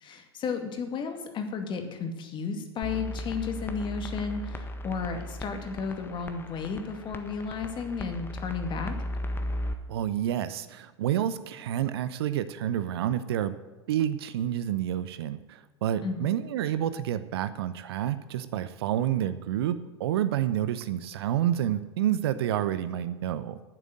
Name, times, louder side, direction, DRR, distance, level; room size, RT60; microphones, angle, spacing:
voice 1, 0.0-8.9 16.0-16.3, left 5 dB, 35° left, 5 dB, 2.4 m, -33 dB
sound 1, 2.8-9.7, left 1 dB, 15° left, 1.4 m, -36 dB
voice 2, 9.9-13.6 13.9-23.6, right 11 dB, 65° right, 13 dB, 0.8 m, -29 dB
11.0 x 8.9 x 7.8 m, 1.2 s
figure-of-eight pair, 85°, 14 cm